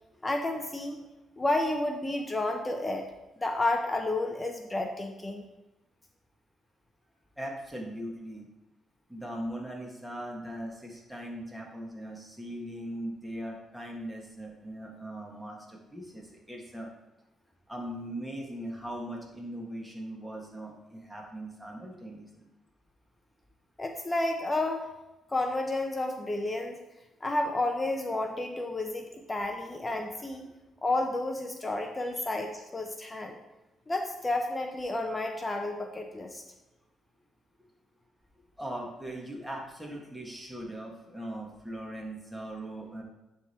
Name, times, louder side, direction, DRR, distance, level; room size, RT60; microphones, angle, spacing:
voice 1, 0.2-1.0 1.4-3.0 3.4-5.4 23.8-24.9 25.3-26.8 27.2-30.5 30.8-33.4 33.9-36.4, left 2 dB, 20° left, 3 dB, 0.7 m, -31 dB
voice 2, 7.4-8.5 9.1-16.9 17.7-22.5 32.0-32.3 38.6-43.0, right 1 dB, 5° right, -2 dB, 1.6 m, -40 dB
9.9 x 3.5 x 4.3 m, 1.0 s
cardioid pair, 90°, 0 cm